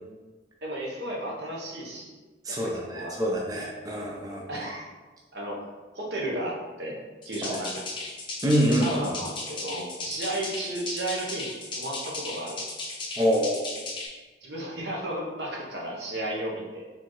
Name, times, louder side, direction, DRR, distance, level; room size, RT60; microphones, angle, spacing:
voice 1, 0.6-2.2 2.5-3.2 4.5-4.9 5.3-5.6 5.9-7.0 7.2-7.9 8.7-12.6 14.4-16.8, right 1 dB, 75° right, -2 dB, 0.9 m, -33 dB
voice 2, 2.4-4.6 7.5-7.6 8.4-8.9 13.2-13.7, equal, 20° right, -2 dB, 0.5 m, -26 dB
sound 1, 7.2-14.1, left 3 dB, 30° left, 0.8 m, -36 dB
4.4 x 3.5 x 3.1 m, 1.3 s
head